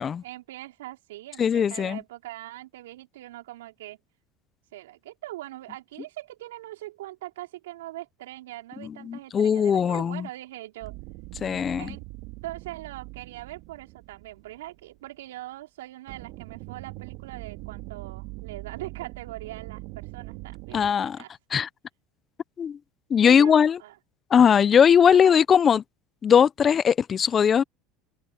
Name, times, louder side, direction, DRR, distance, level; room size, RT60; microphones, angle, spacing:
voice 1, 0.0-4.0 4.7-11.0 11.8-12.0 12.4-21.3 23.2-24.0 25.1-25.4, right 16 dB, 80° right, 4.7 m, -41 dB
voice 2, 1.4-2.0 9.1-10.2 11.4-11.9 20.7-21.2 21.5-21.7 22.6-22.8 23.1-23.8 24.3-25.8 26.2-27.6, left 7 dB, 35° left, 0.7 m, -19 dB
sound 1, 10.8-15.1 16.1-20.9, right 22 dB, 65° right, 2.4 m, -42 dB
hypercardioid pair, 85°, 0 cm